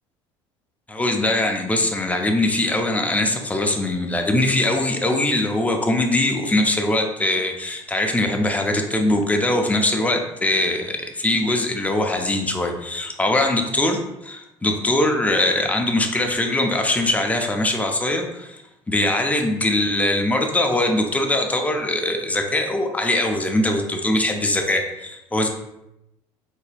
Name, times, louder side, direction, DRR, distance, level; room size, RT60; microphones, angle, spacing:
voice 1, 0.9-18.6 18.9-25.5, left 1 dB, 10° left, 3 dB, 0.5 m, -22 dB
3.9 x 2.7 x 2.2 m, 0.88 s
hypercardioid pair, 65°, 14 cm